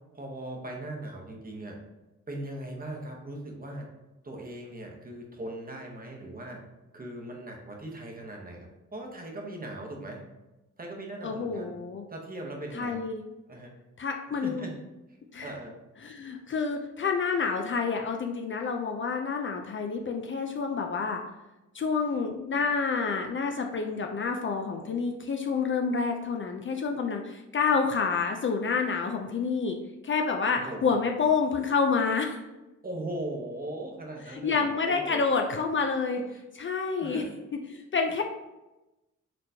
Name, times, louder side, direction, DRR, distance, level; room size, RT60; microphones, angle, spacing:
voice 1, 0.1-1.8 2.3-3.9 4.2-6.6 6.9-10.2 10.8-11.8 12.1-13.0 13.5-13.7 14.3-14.7 15.1-15.8 30.5-30.9 32.8-35.2 37.0-37.3, right 1 dB, 30° right, 0 dB, 0.9 m, -39 dB
voice 2, 11.2-12.0 12.7-13.2 14.0-14.7 15.3-15.5 16.0-21.2 21.7-29.8 30.0-32.4 34.3-36.2 36.5-37.2 37.7-38.2, left 5 dB, 40° left, 3 dB, 0.4 m, -28 dB
4.2 x 3.0 x 2.7 m, 1.0 s
cardioid pair, 80°, 31 cm